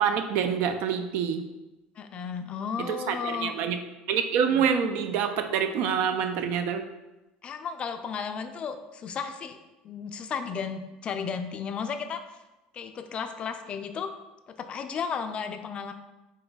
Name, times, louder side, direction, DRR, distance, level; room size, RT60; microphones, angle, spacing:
voice 1, 0.0-1.5 2.9-3.8 4.1-6.8, right 7 dB, 70° right, 8 dB, 0.3 m, -26 dB
voice 2, 2.0-3.5 4.5-4.7 7.4-9.6 9.8-12.2 12.7-14.1 14.5-15.9, left 6 dB, 35° left, 8 dB, 0.3 m, -34 dB
3.7 x 2.3 x 3.9 m, 1.0 s
supercardioid pair, 110°, 3 cm